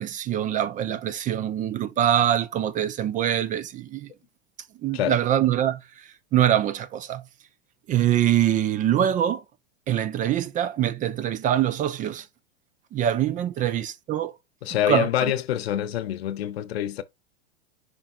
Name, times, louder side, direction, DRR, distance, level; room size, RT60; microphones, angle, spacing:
voice 1, 0.0-4.1 4.8-5.8 6.3-7.2 7.9-9.4 9.9-12.3 12.9-14.3 14.9-15.1, right 11 dB, 25° right, 0.5 m, -24 dB
voice 2, 14.6-17.0, left 11 dB, 75° left, 0.8 m, -26 dB
7.1 x 5.2 x 2.6 m
hypercardioid pair, 110°, 31 cm